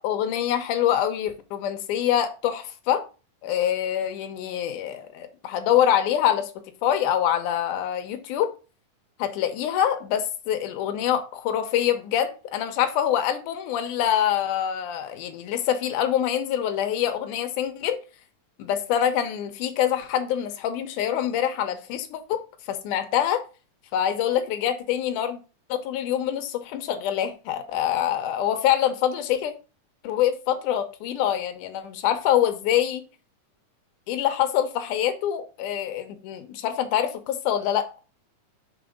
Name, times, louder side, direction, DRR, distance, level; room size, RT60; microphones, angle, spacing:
voice 1, 0.0-3.0 3.4-6.5 6.8-8.5 9.2-18.0 18.6-22.4 22.7-23.4 23.9-25.4 25.7-29.5 30.0-33.0 34.1-37.9, left 10 dB, 85° left, 2.3 m, -25 dB
6.0 x 4.2 x 5.1 m
omnidirectional pair, 3.6 m